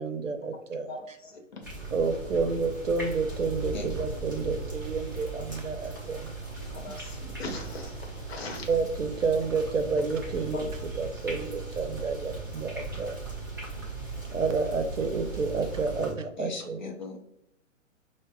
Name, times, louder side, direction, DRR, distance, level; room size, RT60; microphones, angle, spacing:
voice 1, 0.0-0.9 1.9-6.3 8.7-10.7 11.0-13.2 14.3-16.8, right 4 dB, 75° right, 8 dB, 0.6 m, -30 dB
voice 2, 0.9-1.4 6.7-8.7 10.5-10.6, left 2 dB, 55° left, 2 dB, 0.9 m, -39 dB
sound 1, 1.6-16.1, right 3 dB, 20° right, 0.3 m, -38 dB
voice 3, 16.4-17.2, left 4 dB, 35° left, 3 dB, 0.5 m, -39 dB
5.1 x 2.0 x 2.3 m, 0.77 s
figure-of-eight pair, 120°, 39 cm